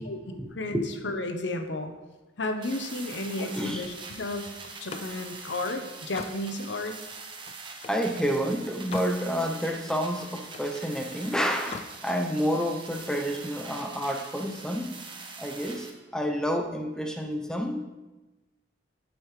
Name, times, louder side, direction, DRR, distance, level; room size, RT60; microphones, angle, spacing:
voice 1, 0.0-0.5 0.7-0.8 3.4-3.8 7.9-14.9 15.4-15.9 16.1-17.8, equal, 5° left, 3 dB, 0.7 m, -29 dB
voice 2, 0.5-1.9 2.4-4.5 4.8-6.9, left 2 dB, 70° left, 6 dB, 0.8 m, -33 dB
sound 1, 2.6-15.9, right 4 dB, 25° right, 0.9 m, -43 dB
Slam, 4.6-8.1 8.5-9.2 9.6-10.8 11.5-12.0, left 4 dB, 35° left, 0.4 m, -43 dB
8.5 x 7.7 x 3.2 m, 1.1 s
head